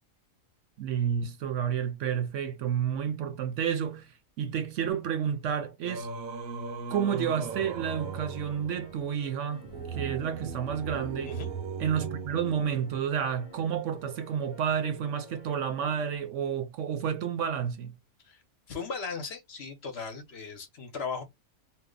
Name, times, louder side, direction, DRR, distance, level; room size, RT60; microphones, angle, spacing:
voice 1, 0.8-4.1 4.4-6.1 6.9-9.6 9.9-11.3 11.8-17.9, right 8 dB, 70° right, 0.9 m, -30 dB
Singing, 5.8-13.2, right 5 dB, 90° right, 1.0 m, -38 dB
sound 1, 7.4-16.2, left 2 dB, 30° left, 0.7 m, -52 dB
voice 2, 11.2-11.5 18.2-18.4 18.7-21.2, left 5 dB, 55° left, 0.9 m, -37 dB
2.8 x 2.0 x 3.6 m
omnidirectional pair, 1.4 m